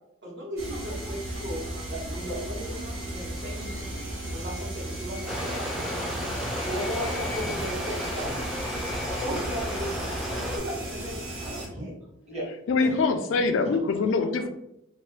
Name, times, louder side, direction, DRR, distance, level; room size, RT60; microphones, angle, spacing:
voice 1, 0.2-1.6 1.9-2.8 3.1-4.0 4.3-6.2 6.9-7.1 8.9-11.9 12.8-12.9, equal, 55° right, -5 dB, 1.1 m, -37 dB
sound 1, 0.6-11.7, right 1 dB, 80° right, 1.3 m, -35 dB
Stream, 5.3-10.6, equal, ahead, 0.4 m, -33 dB
voice 2, 6.6-8.6 12.3-12.5, equal, 30° right, -5 dB, 1.1 m, -35 dB
voice 3, 12.7-14.5, left 4 dB, 65° left, 7 dB, 0.3 m, -24 dB
2.9 x 2.1 x 3.1 m, 0.80 s
head